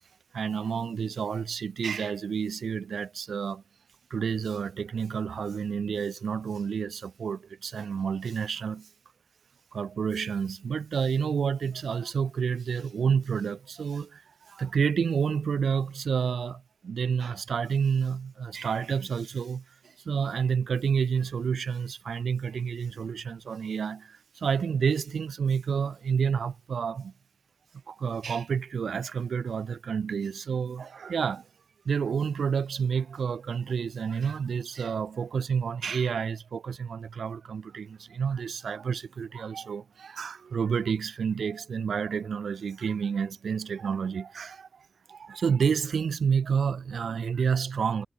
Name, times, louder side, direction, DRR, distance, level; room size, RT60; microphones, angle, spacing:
voice 1, 0.3-3.6 4.1-8.9 9.7-27.1 27.9-31.5 31.8-48.1, right 6 dB, 75° right, 1.0 m, -29 dB
wide cardioid pair, 155°, 0 cm